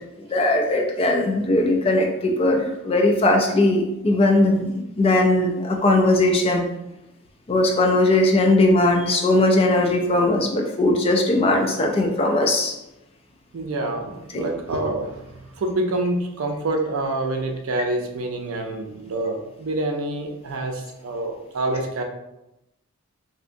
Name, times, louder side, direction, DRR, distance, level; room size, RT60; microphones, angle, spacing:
voice 1, 0.3-6.7 7.5-12.7 14.3-14.5, left 2 dB, 25° left, 1 dB, 0.4 m, -19 dB
voice 2, 13.5-22.0, right 2 dB, 75° right, 3 dB, 0.5 m, -27 dB
3.3 x 2.7 x 2.5 m, 0.91 s
head